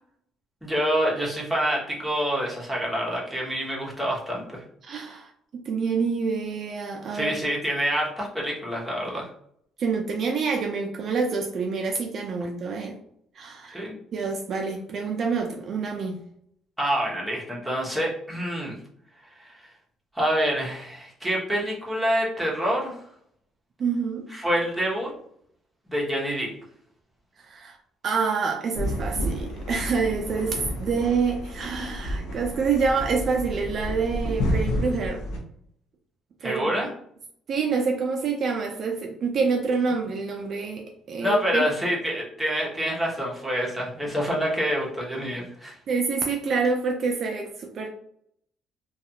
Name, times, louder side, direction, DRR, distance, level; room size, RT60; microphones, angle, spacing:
voice 1, 0.6-4.6 7.1-9.3 13.7-14.0 16.8-18.8 19.3-19.7 20.1-23.0 24.3-25.1 25.9-26.5 36.4-36.9 41.2-45.8, equal, ahead, -5 dB, 0.8 m, -27 dB
voice 2, 4.8-7.3 9.8-13.0 13.4-13.8 14.1-16.2 23.8-24.3 27.4-27.8 28.0-35.2 36.4-36.8 37.5-41.6 45.9-47.9, right 5 dB, 50° right, 2 dB, 0.3 m, -27 dB
sound 1, 28.7-35.4, equal, 90° left, 0.6 m, -30 dB
2.4 x 2.3 x 2.7 m, 0.68 s
cardioid pair, 115°, 0 cm